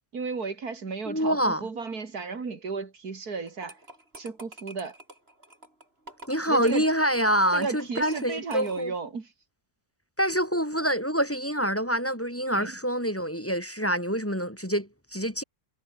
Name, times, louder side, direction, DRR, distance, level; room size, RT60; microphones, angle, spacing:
voice 1, 0.1-3.8 4.2-5.0 6.5-6.9 7.5-9.3 12.5-12.7, right 4 dB, 80° right, 3.1 m, -34 dB
voice 2, 1.1-1.7 6.3-8.9 10.2-15.4, equal, 10° left, 2.9 m, -26 dB
sound 1, 3.5-9.0, right 1 dB, 40° right, 7.7 m, -47 dB
omnidirectional pair, 1.6 m